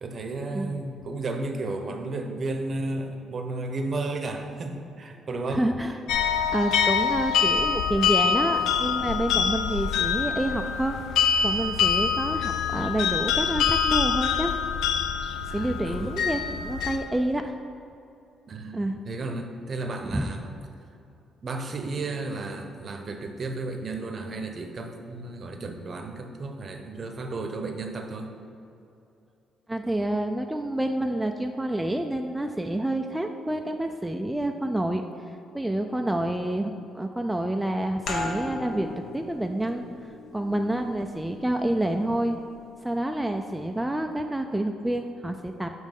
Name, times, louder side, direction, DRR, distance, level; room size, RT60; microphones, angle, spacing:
voice 1, 0.0-5.7 15.5-16.2 18.5-18.8 19.0-20.5 21.4-28.3, right 2 dB, 45° right, 5 dB, 0.7 m, -33 dB
voice 2, 5.5-6.0 6.5-11.0 11.4-14.5 15.5-17.5 18.7-19.0 20.0-20.3 29.7-35.0 35.5-38.9 39.1-42.4 42.8-45.7, right 1 dB, 5° right, 4 dB, 0.3 m, -28 dB
sound 1, 6.1-17.0, left 7 dB, 90° left, 0.4 m, -25 dB
sound 2, 38.1-43.3, left 1 dB, 65° left, 1.1 m, -38 dB
7.3 x 3.2 x 5.3 m, 2.7 s
cardioid pair, 90°, 0 cm